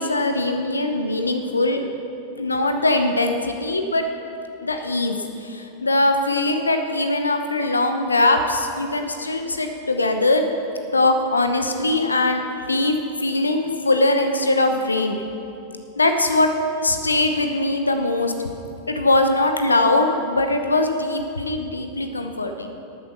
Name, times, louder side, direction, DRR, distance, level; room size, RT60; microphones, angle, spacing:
voice 1, 0.0-1.8 2.4-4.1 4.6-10.5 10.9-12.4 12.7-12.9 13.2-15.2 16.0-16.5 16.8-18.3 18.9-22.7, left 2 dB, 80° left, 6 dB, 0.8 m, -21 dB
13.0 x 9.0 x 6.8 m, 2.8 s
figure-of-eight pair, 90°, 0 cm